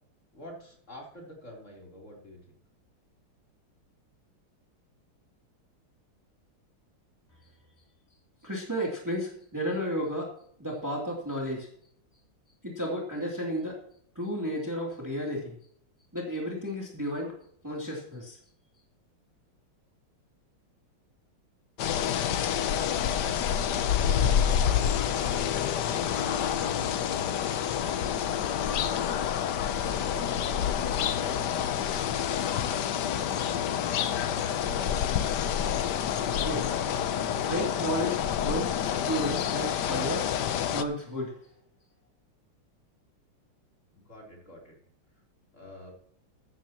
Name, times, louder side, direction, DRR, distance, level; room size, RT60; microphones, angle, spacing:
voice 1, 0.3-2.4 29.7-31.4 43.9-44.8 45.5-45.9, equal, 35° left, -2 dB, 3.9 m, -46 dB
voice 2, 8.4-10.3 10.6-11.7 12.6-13.8 14.1-15.5 16.1-17.3 17.6-18.4 36.4-36.7 37.4-41.3, equal, 10° right, -2 dB, 2.8 m, -32 dB
sound 1, 21.8-40.8, left 9 dB, 65° left, 1.2 m, -28 dB
14.5 x 13.0 x 3.0 m, 0.64 s
omnidirectional pair, 2.3 m